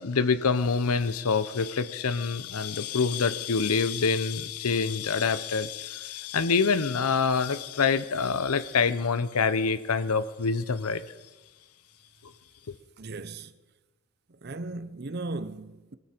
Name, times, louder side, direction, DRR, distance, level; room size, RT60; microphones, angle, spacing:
voice 1, 0.0-11.0 12.7-12.8, left 5 dB, 85° left, 0.7 m, -26 dB
voice 2, 13.0-13.5 14.4-16.0, right 2 dB, 45° right, 0.7 m, -36 dB
22.5 x 13.5 x 4.4 m
head